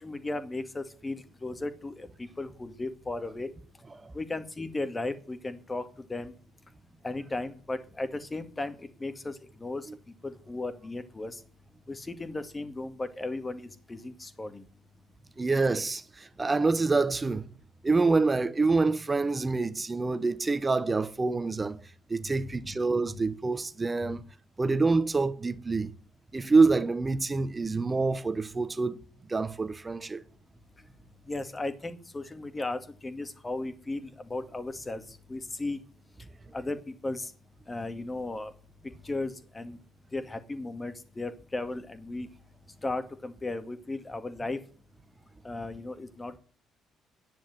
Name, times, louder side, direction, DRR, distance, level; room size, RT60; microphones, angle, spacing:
voice 1, 0.0-3.5 4.1-5.8 6.1-6.3 7.0-9.9 10.2-11.4 11.9-14.6 22.2-22.7 23.1-23.2 24.0-24.2 31.3-35.8 36.5-37.3 37.7-38.5 39.0-39.8 40.1-42.3 42.8-44.6 45.4-46.4, left 2 dB, 25° left, 2.1 m, -36 dB
voice 2, 15.4-16.0 16.4-17.4 17.8-21.8 22.1-24.2 24.6-25.9 26.3-29.0 29.3-30.2, right 3 dB, 25° right, 1.4 m, -26 dB
11.0 x 10.0 x 7.9 m
hypercardioid pair, 50°, 0 cm